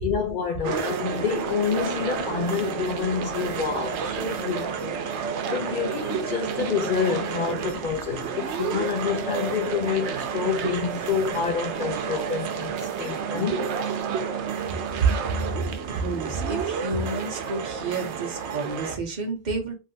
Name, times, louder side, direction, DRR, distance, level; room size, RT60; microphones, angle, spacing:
voice 1, 0.0-5.2 5.5-13.8, left 6 dB, 55° left, 0.6 m, -28 dB
sound 1, 0.6-19.0, right 6 dB, 85° right, 0.9 m, -30 dB
voice 2, 15.9-19.7, right 4 dB, 45° right, 0.9 m, -29 dB
3.2 x 2.7 x 2.7 m
omnidirectional pair, 1.1 m